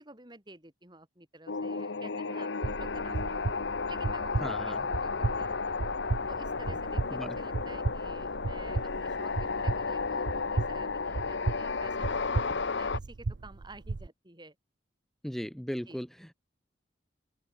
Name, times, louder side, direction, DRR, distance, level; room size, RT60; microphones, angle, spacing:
voice 1, 0.0-3.5 3.9-5.9 6.3-14.6 15.9-16.0, right 2 dB, 20° right, 4.3 m, -51 dB
sound 1, 1.5-13.0, left 4 dB, 65° left, 0.8 m, -33 dB
sound 2, 2.6-14.1, right 3 dB, 60° right, 0.6 m, -35 dB
voice 2, 4.4-4.8 7.1-7.4 15.2-16.3, equal, ahead, 0.5 m, -37 dB
open air
head